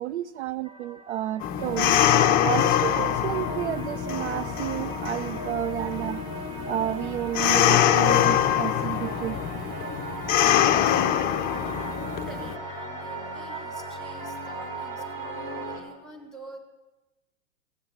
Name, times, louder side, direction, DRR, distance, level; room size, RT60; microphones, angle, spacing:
voice 1, 0.0-2.0 2.4-6.2 6.7-9.4, right 12 dB, 60° right, 15 dB, 0.5 m, -31 dB
sound 1, 0.6-8.1 9.0-15.7, right 1 dB, 15° right, 1.4 m, -46 dB
sound 2, 1.4-12.5, left 11 dB, 25° left, 0.6 m, -24 dB
sound 3, 1.6-15.8, right 1 dB, 35° right, 4.9 m, -37 dB
voice 2, 12.0-16.6, right 1 dB, ahead, 1 dB, 3.2 m, -46 dB
17.0 x 7.9 x 8.2 m, 1.1 s
figure-of-eight pair, 100°, 39 cm